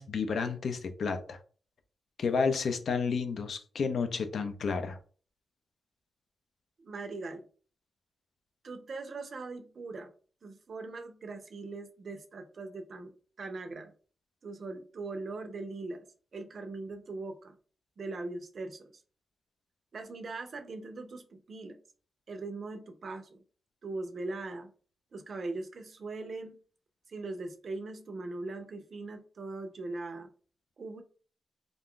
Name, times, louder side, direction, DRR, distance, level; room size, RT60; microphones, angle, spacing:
voice 1, 0.0-1.4 2.2-5.0, left 5 dB, 65° left, 0.4 m, -31 dB
voice 2, 6.8-7.5 8.6-10.1 10.4-13.9 14.4-16.1 16.3-17.5 18.0-19.0 19.9-21.8 22.3-23.4 23.8-24.7 25.1-26.6 27.1-30.3 30.8-31.0, right 3 dB, 50° right, 0.4 m, -40 dB
2.5 x 2.2 x 3.6 m
wide cardioid pair, 130°, 0 cm